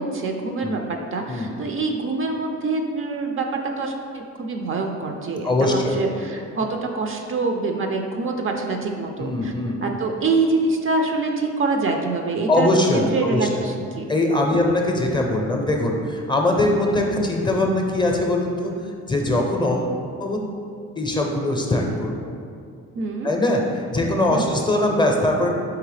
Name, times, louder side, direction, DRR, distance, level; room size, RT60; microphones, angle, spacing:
voice 1, 0.0-9.5 9.8-12.7 13.1-14.1 14.5-14.6 22.9-23.3 24.3-24.5, right 3 dB, 45° right, 3 dB, 0.4 m, -25 dB
voice 2, 5.4-6.0 9.2-9.8 12.5-13.7 14.1-18.7 19.1-19.9 20.2-20.4 21.0-22.2 23.2-25.5, left 1 dB, 15° left, 1 dB, 0.5 m, -21 dB
4.7 x 3.2 x 3.2 m, 2.3 s
cardioid pair, 90°, 30 cm